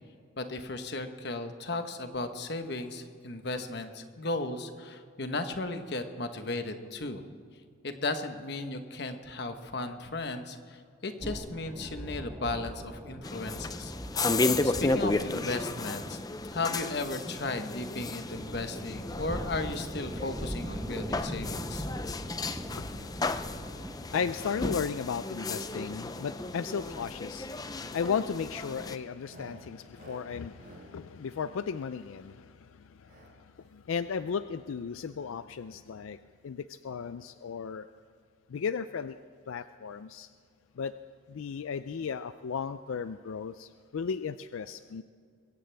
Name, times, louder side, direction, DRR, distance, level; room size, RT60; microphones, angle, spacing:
voice 1, 0.4-7.2 7.8-13.9 14.6-16.2 16.5-21.9, left 2 dB, 55° left, 7 dB, 1.1 m, -35 dB
sound 1, 11.2-27.4, equal, 10° right, 1.0 m, -42 dB
sound 2, 13.2-29.0, left 2 dB, 20° left, 0.4 m, -34 dB
sound 3, 17.0-17.3 17.6-17.9 18.3-18.6 18.9-19.2 19.6-19.9 20.2-20.5 20.8-21.1 21.5-22.4 22.8-23.1 23.4-23.7 24.1-24.4 24.8-25.1 25.4-25.7 26.0-26.3 26.6-26.9 27.3-27.6 27.9-28.2 28.6-32.3 33.0-33.3 33.6-33.7 33.9-34.0, right 2 dB, 45° right, 4.7 m, -54 dB
voice 2, 22.7-36.2 36.4-37.9 38.5-39.2 39.5-40.3 40.8-40.9 41.3-45.0, left 6 dB, 85° left, 12 dB, 0.4 m, -35 dB
22.0 x 16.5 x 3.4 m, 2.2 s
head